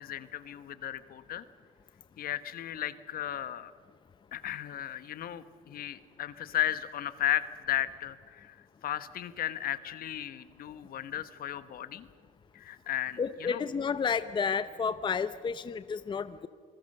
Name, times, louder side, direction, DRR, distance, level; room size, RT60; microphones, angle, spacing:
voice 1, 0.0-1.4 2.2-3.7 4.3-8.6 8.8-12.1 12.5-13.6, left 12 dB, 60° left, 13 dB, 1.2 m, -35 dB
voice 2, 13.2-16.5, left 6 dB, 30° left, 13 dB, 0.7 m, -31 dB
27.0 x 21.0 x 6.7 m, 2.2 s
cardioid pair, 110°, 17 cm